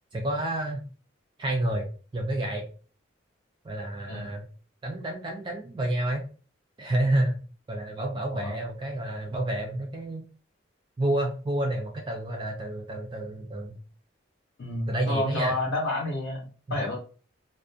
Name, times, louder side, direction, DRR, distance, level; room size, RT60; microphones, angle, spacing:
voice 1, 0.1-0.8 1.4-1.9 2.1-2.7 3.6-4.4 4.8-6.2 6.8-7.4 7.7-10.2 11.0-13.8 14.9-15.6 16.7-16.8, right 1 dB, 25° right, 2 dB, 0.3 m, -29 dB
voice 2, 14.6-17.0, left 1 dB, 60° left, -4 dB, 0.6 m, -30 dB
2.3 x 2.0 x 2.5 m, 0.38 s
head